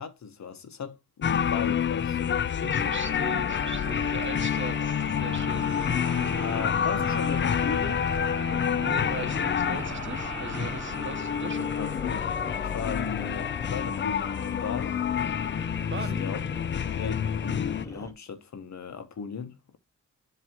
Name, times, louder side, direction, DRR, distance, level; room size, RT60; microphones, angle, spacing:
voice 1, 0.0-2.4 6.4-8.1 11.7-12.2 12.6-15.0 16.2-16.4 16.9-19.8, left 6 dB, 60° left, 1.3 m, -36 dB
sound 1, 1.2-17.8, left 8 dB, 40° left, 0.4 m, -28 dB
voice 2, 2.6-6.7 8.8-11.7 15.9-16.2, right 3 dB, 40° right, 1.2 m, -39 dB
sound 2, 2.7-14.0, right 6 dB, 60° right, 1.5 m, -41 dB
sound 3, 6.2-18.1, left 1 dB, 10° left, 1.1 m, -41 dB
7.7 x 3.1 x 6.0 m
cardioid pair, 90°, 31 cm